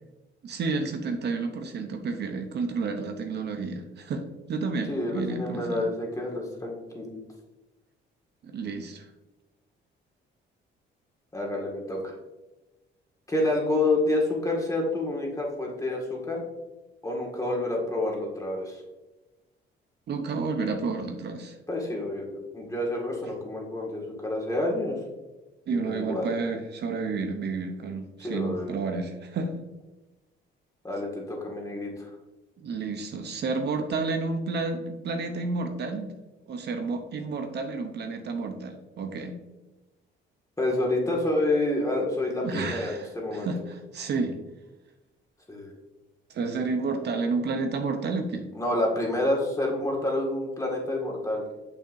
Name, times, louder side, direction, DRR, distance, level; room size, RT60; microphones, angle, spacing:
voice 1, 0.4-5.9 8.4-9.1 20.1-21.5 23.2-23.3 25.7-29.6 32.6-36.2 36.5-39.4 42.4-44.4 46.3-48.5, right 4 dB, 60° right, 5 dB, 0.7 m, -31 dB
voice 2, 4.9-7.2 11.3-12.1 13.3-16.4 17.0-18.8 21.7-25.0 25.7-26.2 28.2-28.7 30.8-32.1 40.6-43.5 45.5-45.7 48.5-51.4, left 2 dB, 15° left, -2 dB, 1.9 m, -28 dB
6.5 x 5.8 x 2.6 m, 1.1 s
cardioid pair, 90°, 20 cm